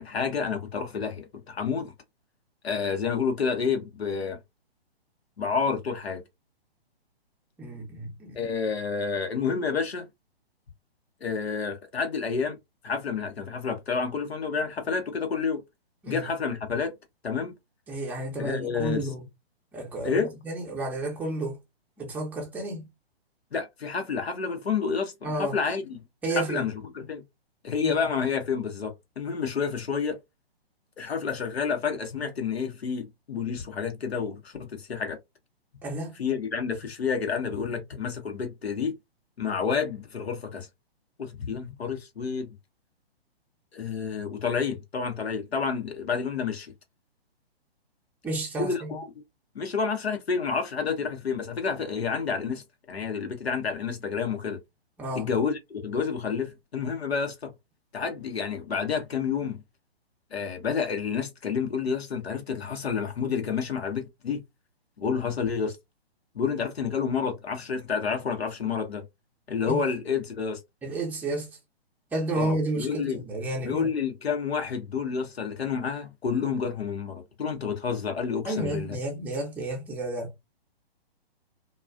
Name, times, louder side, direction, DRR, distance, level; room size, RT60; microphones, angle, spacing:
voice 1, 0.0-1.9 2.6-4.4 5.4-6.2 8.3-10.1 11.2-12.6 12.8-15.6 16.1-16.9 17.2-17.6 18.4-19.1 20.0-20.3 23.5-26.0 26.4-27.2 27.6-30.2 31.0-35.2 36.2-38.9 39.4-40.7 41.2-42.5 43.7-46.7 48.6-49.0 49.5-54.6 55.1-57.5 57.9-59.6 60.3-64.4 65.0-65.8 66.3-69.0 69.5-70.6 72.3-73.2 73.6-79.0, left 6 dB, 75° left, 0.9 m, -29 dB
voice 2, 7.6-8.4 16.0-16.2 17.9-19.2 19.7-21.6 22.0-22.9 25.2-25.6 26.2-26.7 27.8-28.0 35.8-36.1 48.2-48.9 55.0-55.3 69.7-69.8 70.8-71.6 72.1-73.9 78.5-80.3, right 2 dB, 5° right, 0.6 m, -31 dB
2.4 x 2.3 x 2.3 m
figure-of-eight pair, 130°, 31 cm